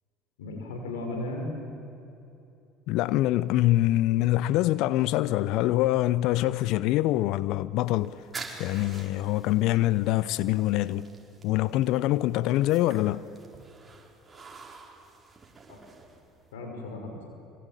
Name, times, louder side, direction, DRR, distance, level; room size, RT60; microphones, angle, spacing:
voice 1, 0.4-1.5 15.7-15.8 16.5-17.2, left 2 dB, 85° left, 5.8 m, -35 dB
voice 2, 2.9-8.2 8.6-11.1 11.4-13.3, left 15 dB, 65° left, 0.6 m, -24 dB
sound 1, 7.8-16.5, right 4 dB, 25° right, 5.0 m, -47 dB
25.0 x 24.5 x 9.1 m
hypercardioid pair, 70°, 0 cm